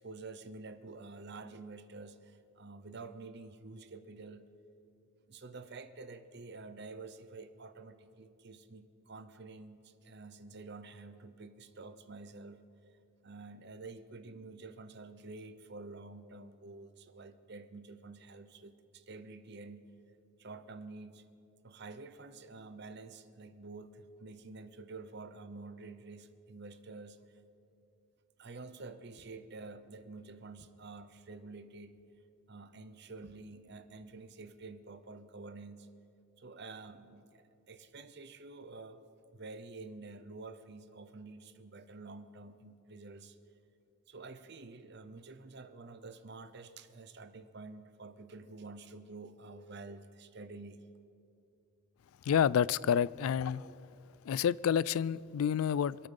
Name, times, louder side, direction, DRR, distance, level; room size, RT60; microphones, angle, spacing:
voice 1, 0.0-4.5 5.3-12.6 13.2-19.9 20.4-21.2 21.6-27.2 28.4-32.0 32.5-35.9 36.4-39.0 39.3-43.4 44.1-50.8, right 3 dB, 50° right, 11 dB, 0.8 m, -49 dB
voice 2, 52.2-53.7 54.2-56.1, left 8 dB, 80° left, 22 dB, 0.3 m, -29 dB
26.5 x 8.8 x 5.5 m, 2.6 s
head